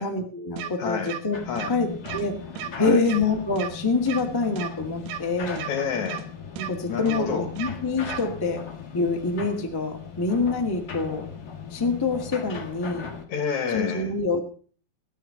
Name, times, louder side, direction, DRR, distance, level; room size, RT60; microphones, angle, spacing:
voice 1, 0.0-1.4 1.7-2.3 2.8-5.7 6.6-8.6 8.9-11.2 11.7-13.1 13.7-14.4, left 3 dB, 20° left, 1 dB, 0.6 m, -26 dB
sound 1, 0.6-0.7 1.1-1.2 1.6-1.7 2.1-2.2 2.6-2.7 3.1-3.2 3.6-3.7 4.1-4.2 4.6-4.7 5.1-5.2 5.6-5.7 6.1-6.2 6.6-6.7 7.1-7.2 7.6-7.7 8.1-8.2, right 10 dB, 80° right, 3.3 m, -33 dB
voice 2, 0.8-1.2 1.5-1.7 2.8-3.0 5.7-6.3 6.9-7.5 13.3-14.1, left 6 dB, 55° left, 7 dB, 2.6 m, -28 dB
sound 2, 1.3-13.3, left 6 dB, 40° left, 1.5 m, -39 dB
15.5 x 10.5 x 5.8 m, 0.43 s
omnidirectional pair, 4.7 m